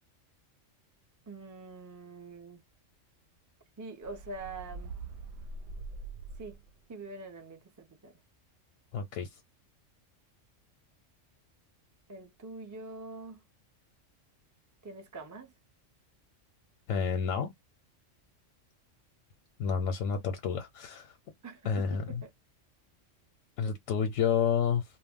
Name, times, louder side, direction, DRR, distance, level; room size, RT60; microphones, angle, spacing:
voice 1, 1.3-2.6 3.8-5.0 6.4-6.6 6.9-8.1 12.1-13.4 14.8-15.5 21.4-22.3, right 3 dB, 30° right, 0.3 m, -44 dB
sound 1, 4.0-6.8, right 3 dB, 65° right, 0.8 m, -43 dB
voice 2, 8.9-9.3 16.9-17.5 19.6-21.1 21.6-22.2 23.6-24.8, left 7 dB, 85° left, 1.0 m, -29 dB
2.3 x 2.1 x 3.5 m
omnidirectional pair, 1.3 m